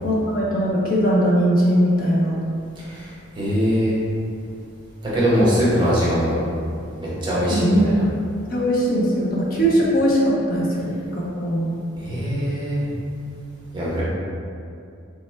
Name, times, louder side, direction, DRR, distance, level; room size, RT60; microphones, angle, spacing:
voice 1, 0.0-2.3 7.5-7.9 8.5-11.7, equal, 45° left, -5 dB, 0.5 m, -20 dB
voice 2, 2.8-4.0 5.0-6.4 7.0-7.9 12.0-12.9 13.7-14.0, equal, 20° right, -8 dB, 0.7 m, -22 dB
3.5 x 2.0 x 3.1 m, 2.5 s
head